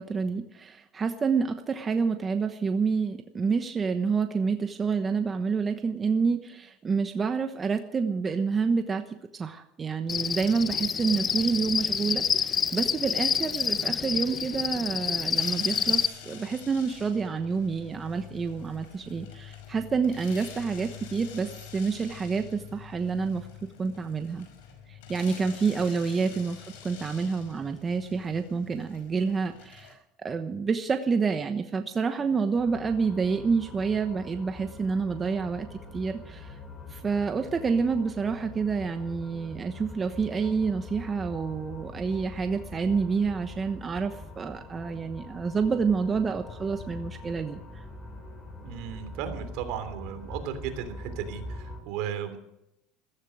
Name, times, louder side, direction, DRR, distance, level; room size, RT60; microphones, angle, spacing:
voice 1, 0.0-23.5 23.8-24.5 24.9-35.7 35.9-36.6 36.9-47.6, right 5 dB, 25° right, 7 dB, 1.1 m, -28 dB
Cricket, 10.1-16.1, left 7 dB, 30° left, 0.7 m, -28 dB
sound 1, 15.3-29.9, left 8 dB, 85° left, 5.1 m, -46 dB
sound 2, 32.6-51.8, left 2 dB, 10° left, 5.0 m, -43 dB
voice 2, 48.6-52.4, right 9 dB, 70° right, 8 dB, 3.1 m, -35 dB
15.0 x 14.5 x 6.3 m, 0.82 s
supercardioid pair, 125°, 0 cm